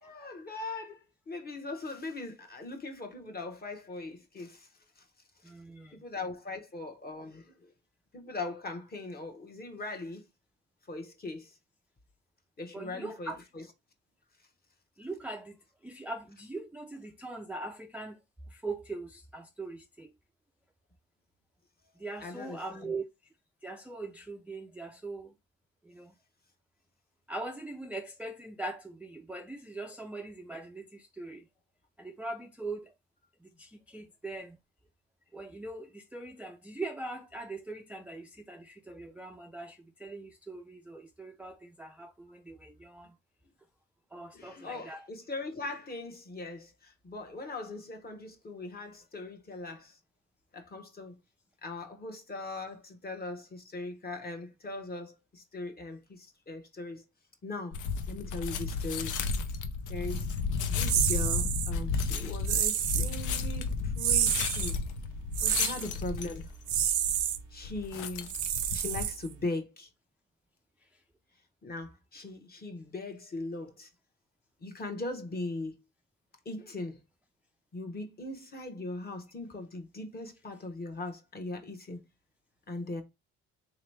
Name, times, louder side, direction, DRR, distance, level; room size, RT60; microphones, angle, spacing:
voice 1, 0.0-4.7 6.0-7.7 8.1-10.2 10.9-11.5 12.6-13.7 22.2-22.9 44.3-50.0 50.5-51.2 51.6-57.0 57.4-57.7 58.1-59.1 59.9-60.3 60.7-64.8 65.4-66.5 67.5-68.3 68.7-69.9 71.6-73.9 74.6-75.7 76.4-77.0 77.7-82.0 82.7-83.0, left 2 dB, 30° left, 0.9 m, -40 dB
voice 2, 5.5-6.0 12.7-13.4 15.0-15.5 15.8-18.2 18.6-20.1 22.0-23.0 23.6-25.3 25.9-26.1 27.3-30.8 31.2-31.4 32.0-32.9 33.6-34.6 35.3-43.1 44.1-45.0, right 2 dB, 5° right, 0.3 m, -41 dB
sound 1, 57.7-69.1, left 4 dB, 80° left, 0.6 m, -33 dB
sound 2, 60.9-61.7 62.5-63.1 64.0-64.7 65.3-65.8 66.7-67.4 68.3-69.4, right 10 dB, 75° right, 0.6 m, -29 dB
3.4 x 2.9 x 3.2 m
cardioid pair, 90°, 30 cm